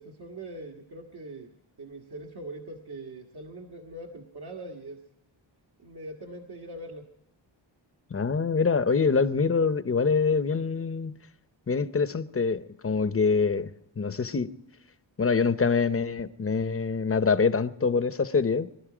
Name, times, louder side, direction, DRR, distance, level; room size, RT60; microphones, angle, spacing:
voice 1, 0.0-1.5 1.8-5.0 5.8-7.1, right 1 dB, 55° right, 1.6 m, -42 dB
voice 2, 8.1-11.2 11.7-14.5 15.2-18.7, left 5 dB, 30° left, 0.8 m, -25 dB
23.0 x 12.0 x 5.0 m
wide cardioid pair, 105°, 47 cm